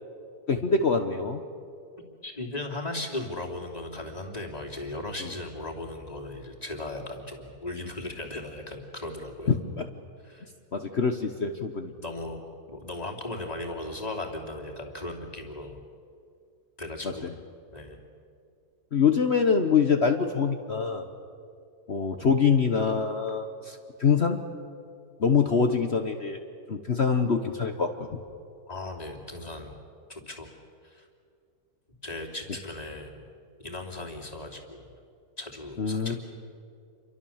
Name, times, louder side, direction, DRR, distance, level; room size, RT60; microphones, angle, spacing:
voice 1, 0.5-1.4 9.8-9.9 10.7-11.9 17.0-17.1 18.9-21.0 21.9-24.4 25.2-26.4 26.7-28.1 35.8-36.2, left 5 dB, 45° left, 6 dB, 1.3 m, -24 dB
voice 2, 2.2-9.6 10.2-10.5 12.0-12.4 12.7-15.8 16.8-17.3 17.7-18.0 28.7-29.7 30.1-30.5 30.8-31.1 32.0-33.3 33.6-34.9 35.4-36.2, left 2 dB, 25° left, 0 dB, 3.1 m, -37 dB
29.0 x 24.0 x 7.3 m, 2.4 s
omnidirectional pair, 1.8 m